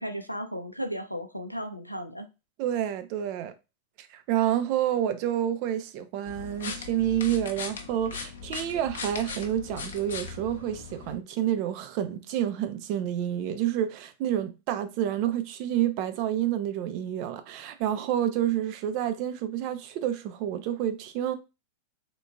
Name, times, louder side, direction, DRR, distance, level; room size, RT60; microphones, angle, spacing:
voice 1, 0.0-2.3, equal, 90° left, 0.4 m, -35 dB
voice 2, 2.6-3.5 4.0-21.4, right 11 dB, 45° right, 0.5 m, -29 dB
sound 1, 6.3-11.2, left 5 dB, 65° left, 0.7 m, -39 dB
3.7 x 3.7 x 2.2 m
figure-of-eight pair, 90°, 0 cm